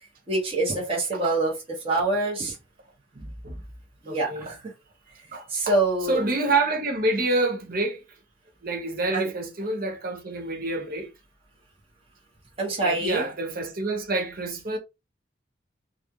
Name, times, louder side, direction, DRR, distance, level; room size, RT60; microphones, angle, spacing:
voice 1, 0.3-1.5 1.8-2.5 4.0-4.6 5.5-6.2 9.1-9.3 12.6-13.2, right 2 dB, 30° right, 1.3 m, -25 dB
voice 2, 3.2-3.6 4.1-4.5 5.3-5.8 6.0-8.0 8.6-11.1 12.8-14.8, right 2 dB, 50° right, 0.8 m, -28 dB
4.0 x 2.4 x 2.9 m
head